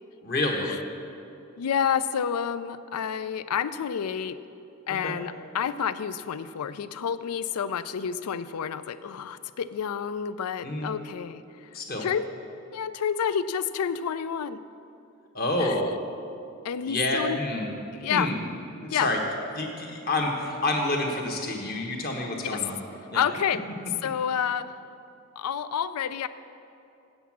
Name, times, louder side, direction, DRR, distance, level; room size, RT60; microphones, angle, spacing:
voice 1, 0.2-0.7 4.9-5.1 10.6-10.9 11.7-12.1 15.3-15.8 16.9-17.7 18.1-18.4 18.8-19.2 19.5-22.8 23.1-23.3, left 2 dB, 40° left, 1 dB, 1.3 m, -28 dB
voice 2, 1.6-4.4 4.9-11.7 12.0-12.3 12.7-14.6 15.6-15.8 16.6-17.4 17.9-18.3 18.9-19.1 23.1-23.6 24.0-24.7 25.4-26.3, left 7 dB, 90° left, 15 dB, 0.4 m, -29 dB
8.3 x 8.1 x 7.3 m, 2.7 s
head